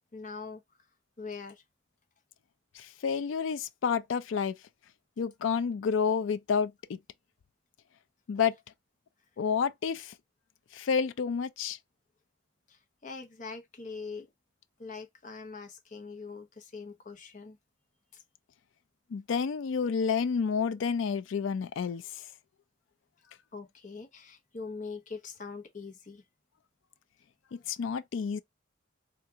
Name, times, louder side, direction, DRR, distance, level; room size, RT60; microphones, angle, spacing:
voice 1, 0.1-0.6 1.2-1.6 12.7-14.3 14.8-17.6 18.1-18.2 23.5-26.2, left 4 dB, 40° left, 0.8 m, -43 dB
voice 2, 2.8-4.5 5.2-7.0 8.3-8.6 9.4-10.1 10.7-11.8 19.1-22.0 27.7-28.4, left 6 dB, 70° left, 0.4 m, -29 dB
3.6 x 2.5 x 2.7 m
head